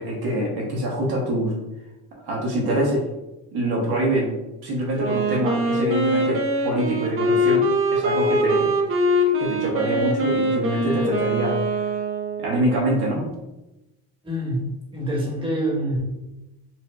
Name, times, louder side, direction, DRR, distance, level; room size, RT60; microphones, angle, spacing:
voice 1, 0.0-1.5 2.2-3.0 3.5-4.4 4.6-8.7 9.4-11.6 12.4-13.3, right 1 dB, 55° right, -2 dB, 0.9 m, -25 dB
Wind instrument woodwind instrument, 5.0-12.7, equal, 30° right, 0.5 m, -22 dB
voice 2, 14.2-14.7 14.9-16.0, right 1 dB, 10° right, -3 dB, 1.0 m, -25 dB
4.2 x 2.1 x 2.2 m, 0.98 s
supercardioid pair, 95°, 45 cm